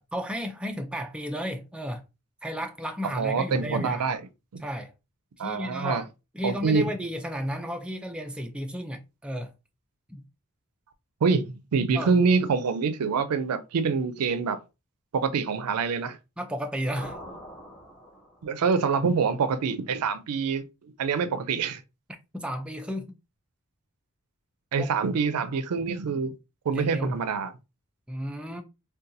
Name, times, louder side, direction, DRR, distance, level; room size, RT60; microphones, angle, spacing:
voice 1, 0.1-2.0 2.4-4.2 4.6-4.9 5.4-6.1 6.3-9.5 10.1-10.2 11.9-12.1 16.4-17.2 22.3-23.2 24.8-24.9 26.1-26.2 26.7-27.1 28.1-28.6, equal, 5° right, 0.3 m, -33 dB
voice 2, 3.0-4.2 5.4-6.0 6.4-6.9 11.2-14.6 15.1-16.2 18.4-21.8 24.7-26.3 26.7-27.5, right 5 dB, 90° right, 0.4 m, -26 dB
sound 1, 17.0-18.7, equal, 30° left, 1.4 m, -43 dB
3.9 x 2.2 x 2.6 m
head